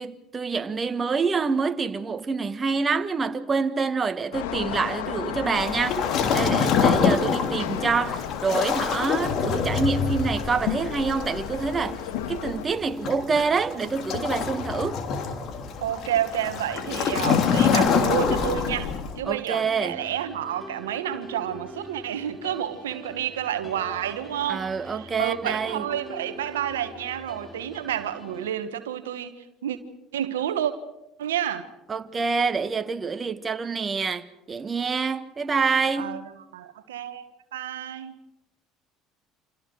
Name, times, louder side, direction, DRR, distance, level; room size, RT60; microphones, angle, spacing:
voice 1, 0.0-6.0 6.3-12.0 12.3-15.0 19.2-20.0 24.5-25.8 31.9-36.2, right 4 dB, 30° right, 1.5 m, -26 dB
sound 1, 4.3-12.7, left 10 dB, 75° left, 1.7 m, -34 dB
Waves surf, 5.5-19.2, left 6 dB, 55° left, 3.0 m, -26 dB
voice 2, 15.8-29.3 29.6-29.8 30.1-30.7 31.2-31.7 36.0-36.2 36.5-37.2 37.5-38.2, right 10 dB, 85° right, 1.3 m, -29 dB
sound 2, 19.6-28.5, equal, 10° left, 3.4 m, -43 dB
29.5 x 27.0 x 4.8 m
hypercardioid pair, 65°, 0 cm